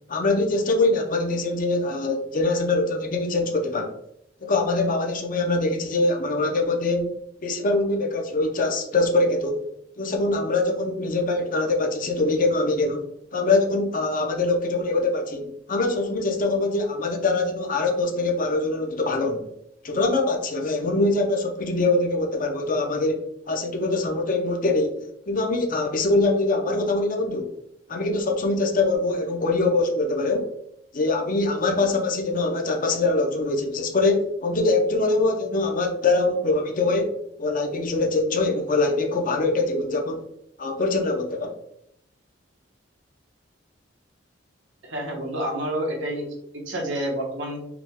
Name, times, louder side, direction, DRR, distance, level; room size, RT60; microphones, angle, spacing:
voice 1, 0.1-3.9 4.4-7.1 7.4-9.6 10.0-13.0 13.3-19.5 19.8-23.2 23.5-27.5 27.9-30.5 30.9-40.2 40.6-41.6, left 2 dB, 45° left, 3 dB, 0.7 m, -23 dB
voice 2, 44.8-46.2 46.7-47.6, right 1 dB, 85° right, 0 dB, 1.2 m, -28 dB
4.9 x 2.3 x 3.5 m, 0.75 s
head